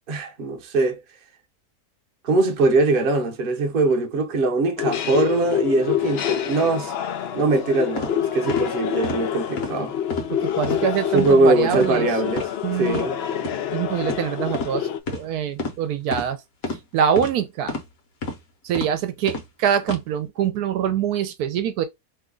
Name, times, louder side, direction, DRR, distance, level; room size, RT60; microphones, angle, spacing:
voice 1, 0.1-1.0 2.2-7.0 7.3-9.9 11.1-12.5 12.8-13.2, right 2 dB, 45° right, 0.8 m, -21 dB
sound 1, 4.8-15.0, left 10 dB, 80° left, 0.5 m, -27 dB
sound 2, 8.0-8.1 8.5-8.7 9.0-9.2 9.6-9.7 10.1-10.3 10.6-10.8 11.2-11.4 11.7-11.9 12.3-12.5 12.9-13.1 13.4-13.6 14.1-14.2 14.5-14.7 15.1-15.2 15.6-15.8 16.1-16.3 16.6-16.8 17.2-17.3 17.7-17.9 18.2-18.4 18.7-18.9 19.3-19.5 19.8-20.0, left 2 dB, 65° left, 1.3 m, -29 dB
voice 2, 10.3-12.1 12.6-13.1 13.7-16.4 16.9-17.7 18.6-21.8, right 9 dB, 80° right, 1.1 m, -24 dB
3.1 x 2.3 x 3.7 m
omnidirectional pair, 1.7 m